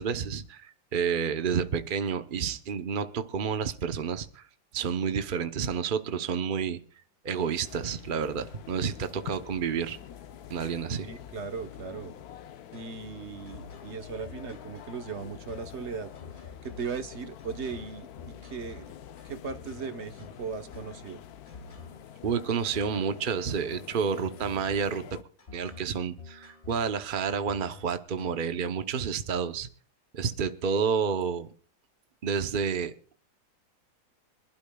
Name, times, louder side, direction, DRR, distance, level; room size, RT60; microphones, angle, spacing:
voice 1, 0.0-4.4 4.7-6.8 7.2-10.0 10.5-11.1 22.2-25.0 25.5-29.7 30.1-31.5 32.2-32.9, right 6 dB, 70° right, 9 dB, 0.4 m, -30 dB
sound 1, 7.6-25.2, left 10 dB, 65° left, 1.0 m, -46 dB
voice 2, 11.0-12.1 12.7-16.1 16.6-18.9 19.2-21.2, right 5 dB, 45° right, 9 dB, 1.0 m, -38 dB
sound 2, 12.7-28.6, left 4 dB, 35° left, 2.1 m, -50 dB
25.5 x 12.0 x 2.3 m, 0.42 s
omnidirectional pair, 2.1 m